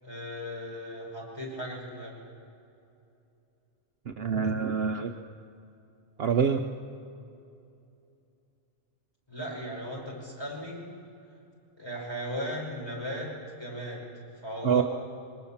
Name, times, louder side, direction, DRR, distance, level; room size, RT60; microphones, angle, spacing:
voice 1, 0.0-2.1 9.3-10.8 11.8-14.0 14.4-14.8, equal, 20° left, -3 dB, 5.3 m, -37 dB
voice 2, 4.1-5.1 6.2-6.6 14.6-14.8, right 6 dB, 55° right, 6 dB, 0.9 m, -26 dB
22.5 x 19.5 x 7.2 m, 2.7 s
omnidirectional pair, 1.3 m